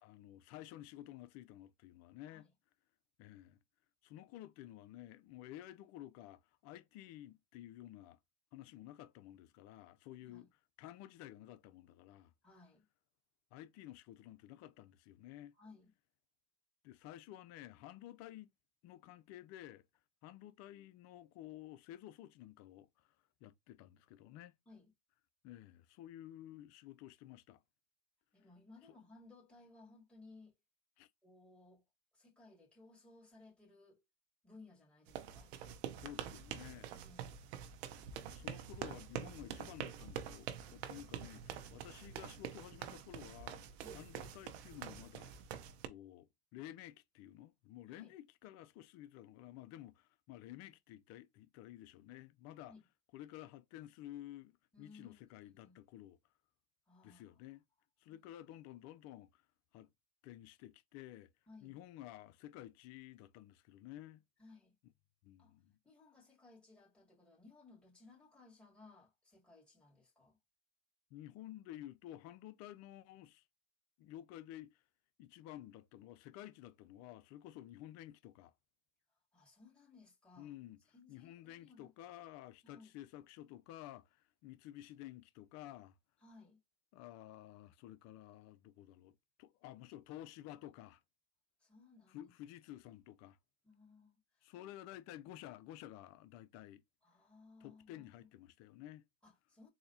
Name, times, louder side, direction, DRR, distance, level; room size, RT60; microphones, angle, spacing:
voice 1, 0.0-2.5 3.2-3.6 4.0-8.2 8.5-10.5 10.8-12.3 13.5-15.5 16.8-18.5 18.8-19.9 20.2-23.2 23.4-24.6 25.4-27.6 31.0-31.1 36.0-36.9 38.3-43.6 43.9-45.3 45.8-52.7 53.1-56.2 57.0-57.6 58.0-59.4 59.7-59.9 60.2-61.3 61.6-64.2 65.2-65.7 71.1-73.5 74.0-74.8 75.2-78.5 80.4-80.8 81.1-86.0 86.9-91.0 92.1-93.4 94.4-96.8 97.6-99.1, left 13 dB, 55° left, 0.6 m, -52 dB
voice 2, 12.4-12.9 15.6-15.9 24.7-24.9 28.3-30.6 31.2-31.8 32.1-34.0 34.4-35.6 37.0-37.4 43.8-44.1 47.9-48.1 52.7-52.8 54.7-55.8 56.9-57.4 58.1-58.3 61.5-61.8 64.4-64.8 65.4-65.6 65.8-70.4 79.3-80.5 80.9-81.9 82.6-82.9 86.2-86.6 91.6-92.3 93.6-94.7 97.0-98.3 99.2-99.7, left 3 dB, 5° left, 2.4 m, -61 dB
sound 1, 35.1-45.9, right 9 dB, 80° right, 0.8 m, -46 dB
4.0 x 2.7 x 2.7 m
supercardioid pair, 100°, 32 cm